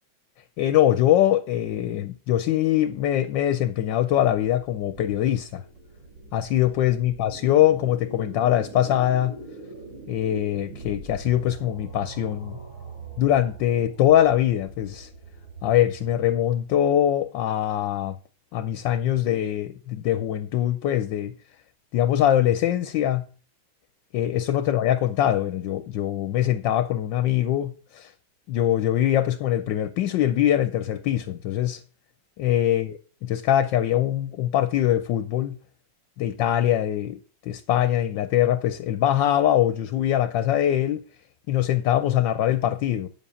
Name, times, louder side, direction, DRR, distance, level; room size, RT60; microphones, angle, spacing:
voice 1, 0.6-5.6 6.3-9.4 10.1-12.6 13.2-15.1 15.6-18.1 18.5-21.3 21.9-23.3 24.1-28.1 28.5-31.8 32.4-33.0 33.2-35.6 36.2-41.0 41.5-43.1, left 11 dB, 70° left, 1.3 m, -23 dB
sound 1, 4.0-16.7, right 3 dB, 80° right, 6.1 m, -42 dB
8.7 x 7.4 x 7.0 m
omnidirectional pair, 2.2 m